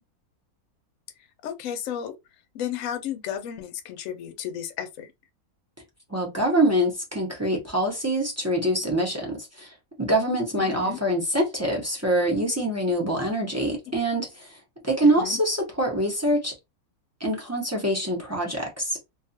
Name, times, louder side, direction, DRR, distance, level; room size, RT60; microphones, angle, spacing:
voice 1, 1.4-2.2 2.5-5.1 10.6-11.0 13.9-14.0 15.0-15.4, left 9 dB, 65° left, 0.9 m, -33 dB
voice 2, 6.1-9.7 10.0-14.6 14.8-16.5 17.2-19.0, right 1 dB, 20° right, 0.4 m, -25 dB
2.6 x 2.3 x 2.6 m
omnidirectional pair, 1.6 m